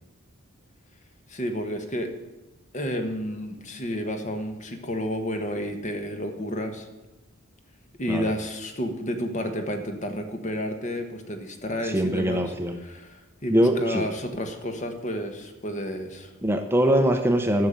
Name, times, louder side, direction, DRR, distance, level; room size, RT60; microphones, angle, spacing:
voice 1, 1.3-2.1 2.7-6.9 8.0-12.5 12.8-16.3, equal, 35° left, 6 dB, 1.3 m, -31 dB
voice 2, 11.8-12.8 13.5-14.1 16.4-17.7, equal, 10° right, 5 dB, 0.7 m, -22 dB
11.0 x 6.6 x 8.8 m, 1.1 s
head